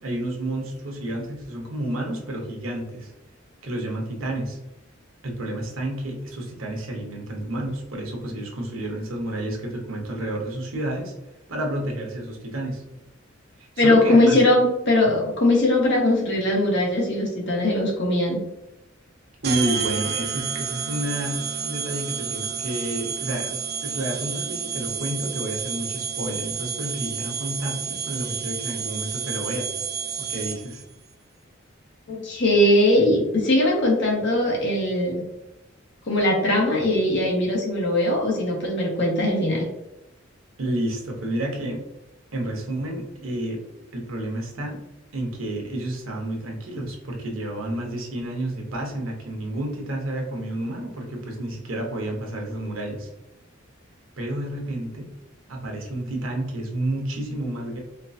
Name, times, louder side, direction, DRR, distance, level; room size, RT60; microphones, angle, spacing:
voice 1, 0.0-3.1 3.6-4.6 5.2-11.1 11.5-12.8 13.6-14.4 19.4-29.9 30.2-30.8 40.6-41.8 42.3-43.6 43.9-44.8 45.1-53.1 54.2-55.1 55.5-57.8, right 1 dB, 80° right, 0 dB, 1.0 m, -30 dB
voice 2, 13.8-18.4 32.1-35.2 36.1-39.7, left 1 dB, 65° left, -2 dB, 1.2 m, -20 dB
sound 1, 19.4-30.8, right 7 dB, 55° right, 0.5 m, -30 dB
4.4 x 2.4 x 2.6 m, 0.92 s
head